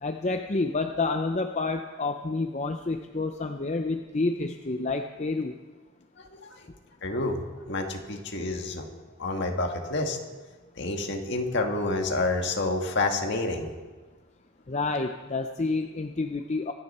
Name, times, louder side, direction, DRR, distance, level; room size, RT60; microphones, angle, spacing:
voice 1, 0.0-5.6 14.7-16.7, left 3 dB, 35° left, 5 dB, 0.6 m, -29 dB
voice 2, 7.0-7.4 7.7-8.8 9.2-10.2 10.8-13.7, left 2 dB, 55° left, 3 dB, 1.8 m, -28 dB
25.0 x 10.0 x 4.3 m, 1.3 s
head